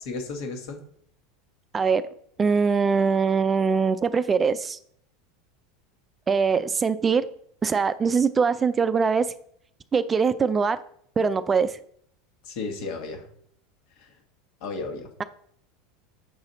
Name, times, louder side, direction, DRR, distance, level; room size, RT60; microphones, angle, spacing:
voice 1, 0.1-0.8 12.4-13.2 14.0-14.1 14.6-15.1, left 3 dB, 65° left, 4 dB, 1.3 m, -33 dB
voice 2, 2.4-4.8 6.3-7.2 7.6-9.2 9.9-10.8 11.2-11.8, right 5 dB, 25° right, 12 dB, 0.3 m, -22 dB
6.9 x 4.1 x 3.9 m, 0.65 s
supercardioid pair, 110°, 0 cm